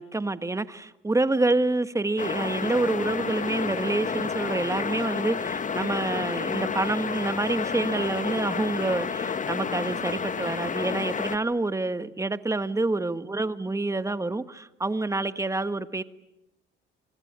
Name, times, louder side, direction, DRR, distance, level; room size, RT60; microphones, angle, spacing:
voice 1, 0.0-16.0, right 2 dB, 15° right, 1.5 m, -27 dB
sound 1, 2.2-11.4, left 6 dB, 40° left, 1.8 m, -30 dB
26.0 x 25.5 x 9.0 m
cardioid pair, 90°, 20 cm